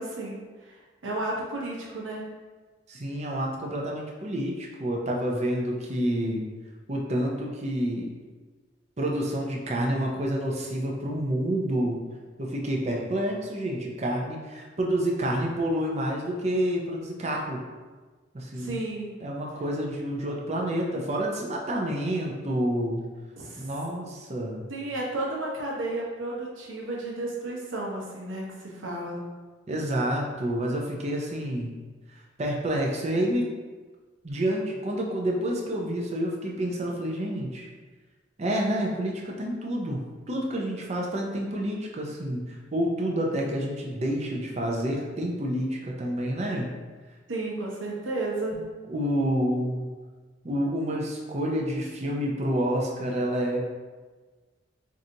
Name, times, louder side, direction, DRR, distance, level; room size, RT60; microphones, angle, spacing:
voice 1, 0.0-2.2 18.5-19.2 23.4-23.7 24.7-29.2 47.3-48.6, right 2 dB, 80° right, -3 dB, 0.9 m, -33 dB
voice 2, 2.9-6.4 6.9-8.1 9.0-12.0 12.4-17.6 18.3-18.8 19.2-23.0 23.6-24.6 29.7-31.7 32.1-33.5 34.2-37.7 38.4-46.7 48.5-48.6 48.9-49.9 50.4-53.6, right 1 dB, 35° right, -1 dB, 0.6 m, -28 dB
4.7 x 2.6 x 2.8 m, 1.3 s
head